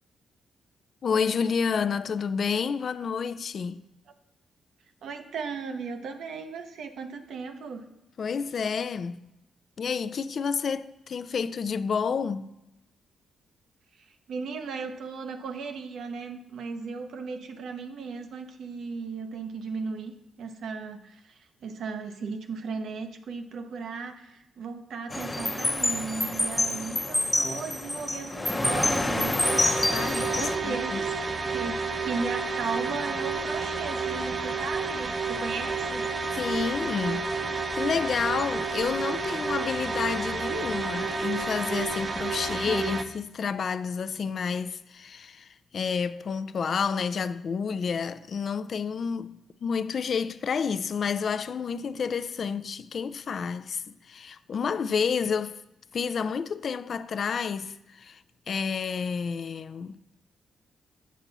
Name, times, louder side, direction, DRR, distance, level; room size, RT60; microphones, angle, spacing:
voice 1, 1.0-3.8 8.2-9.3 9.8-12.5 29.9-31.0 36.3-55.6 55.9-58.2 58.5-60.0, left 6 dB, 60° left, 0.3 m, -30 dB
voice 2, 5.0-7.8 14.0-21.3 21.6-29.4 30.1-36.1 42.4-42.8, right 5 dB, 80° right, 0.7 m, -36 dB
sound 1, 25.1-30.6, left 2 dB, 20° left, 0.7 m, -27 dB
sound 2, 29.4-43.0, right 4 dB, 40° right, 0.6 m, -30 dB
7.3 x 5.5 x 4.0 m
cardioid pair, 70°, 0 cm